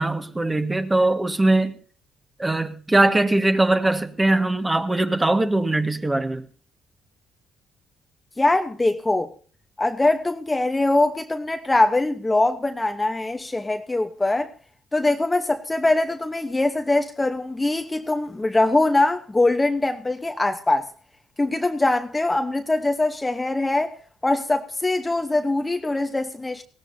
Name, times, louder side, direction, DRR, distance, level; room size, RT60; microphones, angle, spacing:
voice 1, 0.0-1.7 2.4-6.4, right 2 dB, 15° right, 1.6 m, -21 dB
voice 2, 8.4-9.3 9.8-14.5 14.9-20.9 21.4-24.0 24.2-26.6, left 2 dB, 15° left, 1.0 m, -22 dB
20.0 x 17.0 x 2.7 m
cardioid pair, 90°, 0 cm